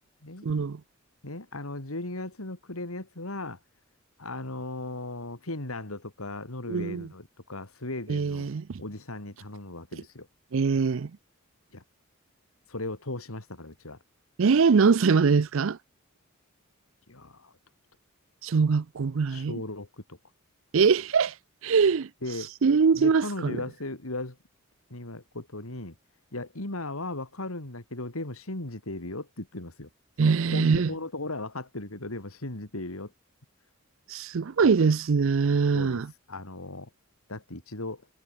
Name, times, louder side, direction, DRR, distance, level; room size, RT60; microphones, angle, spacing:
voice 1, 0.4-0.8 6.7-7.1 8.1-8.7 10.5-11.1 14.4-15.8 18.4-19.5 20.7-21.3 21.6-22.1 22.6-23.6 30.2-30.9 34.1-36.1, right 5 dB, 65° right, 0.5 m, -23 dB
voice 2, 1.2-3.6 4.2-8.5 8.8-10.3 11.7-11.8 12.7-14.0 17.1-17.5 19.3-20.2 22.2-22.5 22.9-24.4 24.9-25.9 26.3-29.9 30.2-33.1 34.6-34.8 35.7-36.0 36.3-36.9 37.3-38.0, left 2 dB, 80° left, 3.2 m, -37 dB
head